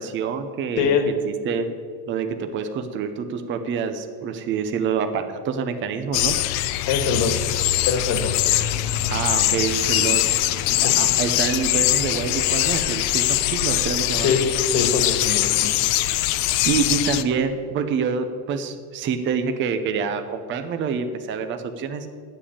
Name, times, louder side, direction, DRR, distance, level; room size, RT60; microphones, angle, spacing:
voice 1, 0.0-1.7 2.1-6.4 9.0-10.3 10.8-14.4 16.6-22.1, right 6 dB, 25° right, 7 dB, 0.7 m, -26 dB
voice 2, 0.8-1.1 6.9-7.4 7.9-8.5 10.8-11.0 14.2-14.5 14.7-15.8, left 5 dB, 45° left, 6 dB, 1.7 m, -23 dB
sound 1, 6.1-17.2, left 15 dB, 85° left, 0.8 m, -22 dB
10.5 x 7.7 x 8.6 m, 2.1 s
cardioid pair, 170°, 44 cm